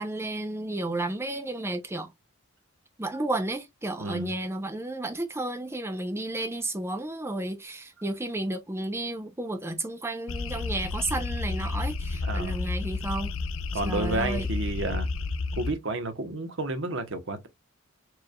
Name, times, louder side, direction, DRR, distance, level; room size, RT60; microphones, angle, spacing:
voice 1, 0.0-2.1 3.0-13.3 13.8-14.5, right 2 dB, 10° right, 0.5 m, -32 dB
voice 2, 4.0-4.3 12.2-12.6 13.7-15.1 15.6-17.5, right 2 dB, 60° right, 1.0 m, -31 dB
sound 1, 10.3-15.7, left 3 dB, 65° left, 0.4 m, -31 dB
4.6 x 3.3 x 2.2 m
head